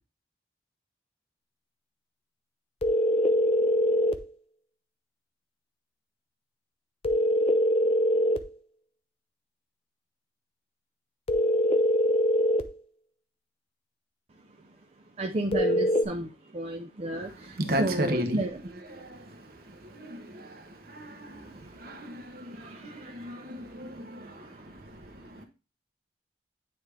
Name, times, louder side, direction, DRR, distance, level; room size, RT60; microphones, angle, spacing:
sound 1, 2.8-4.2 7.0-8.5 11.3-12.7 15.5-16.0, left 1 dB, 35° left, 0.5 m, -23 dB
voice 1, 15.2-16.3 16.5-17.3 17.8-18.6, right 1 dB, 35° right, 0.5 m, -31 dB
voice 2, 17.1-18.5 18.7-25.5, right 1 dB, 55° right, 1.0 m, -36 dB
9.3 x 3.5 x 3.3 m
head